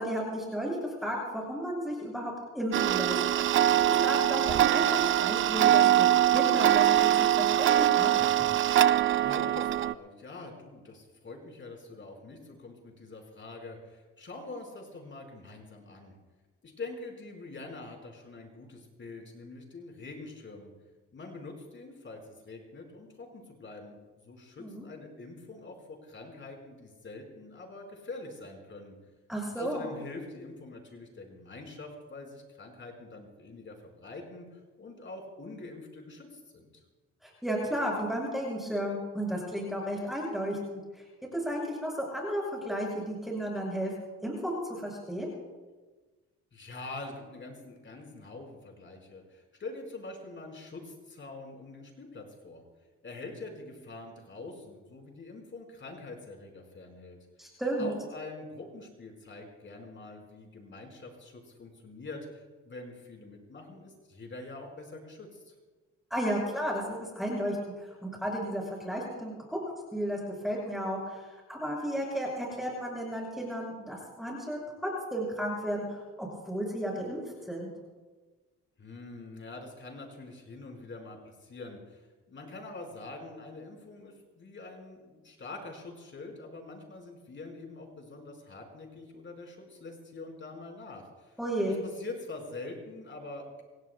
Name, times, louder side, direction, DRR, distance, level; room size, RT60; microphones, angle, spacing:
voice 1, 0.0-3.2 4.0-8.1 24.6-24.8 29.3-29.9 37.2-41.0 41.3-43.9 44.2-45.3 57.4-57.9 66.1-71.2 71.5-74.6 75.1-77.2 77.5-77.7 91.4-91.8, equal, ahead, -3 dB, 6.1 m, -33 dB
Tick-tock, 2.7-9.9, right 12 dB, 45° right, 0.4 m, -23 dB
voice 2, 9.1-16.1 16.6-20.7 21.1-24.0 24.2-28.9 29.5-36.8 46.5-52.6 53.0-57.2 57.8-65.5 78.8-82.0 82.3-91.4 91.6-93.6, left 3 dB, 40° left, 2 dB, 4.7 m, -45 dB
27.0 x 17.5 x 2.3 m, 1.3 s
cardioid pair, 90°, 30 cm